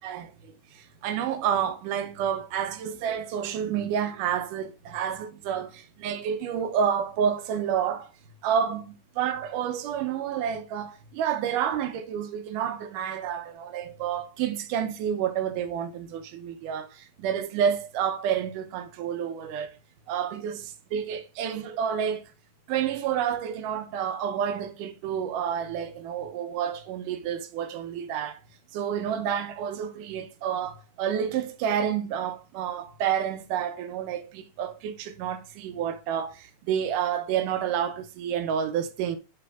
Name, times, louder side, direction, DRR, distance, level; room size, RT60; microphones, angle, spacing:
voice 1, 0.0-8.0 8.4-19.7 20.1-22.3 22.7-28.4 28.7-39.2, right 8 dB, 80° right, 2.3 m, -29 dB
11.0 x 5.0 x 2.3 m
omnidirectional pair, 3.7 m